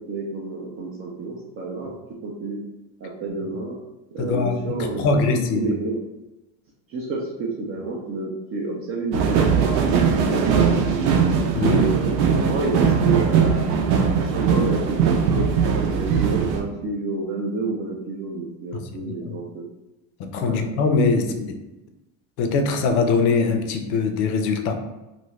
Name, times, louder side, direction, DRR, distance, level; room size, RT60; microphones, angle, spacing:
voice 1, 0.1-1.9 2.2-2.6 3.0-3.8 4.1-6.0 6.9-9.9 10.3-11.0 11.6-13.7 14.1-19.6 20.4-20.7 21.1-21.2, right 3 dB, 30° right, -2 dB, 0.4 m, -29 dB
voice 2, 4.2-4.6 5.0-5.7 11.5-11.9 19.0-19.3 20.3-21.5 22.4-24.7, left 4 dB, 60° left, 6 dB, 0.6 m, -22 dB
sound 1, 9.1-16.6, right 6 dB, 85° right, 0.7 m, -20 dB
2.7 x 2.5 x 3.1 m, 1.0 s
supercardioid pair, 130°, 49 cm